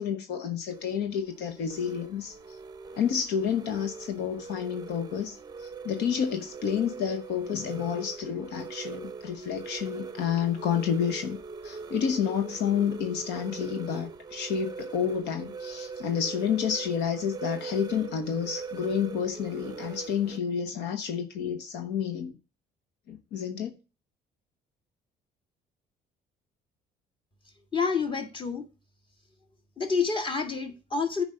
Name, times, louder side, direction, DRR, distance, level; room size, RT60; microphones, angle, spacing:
voice 1, 0.0-2.3 3.0-11.4 11.6-22.4 23.1-23.8, left 8 dB, 80° left, 1.0 m, -30 dB
sound 1, 0.7-20.4, right 5 dB, 25° right, 0.6 m, -41 dB
voice 2, 27.7-28.7 29.8-31.2, left 5 dB, 30° left, 1.9 m, -28 dB
10.0 x 4.8 x 5.4 m
cardioid pair, 110°, 17 cm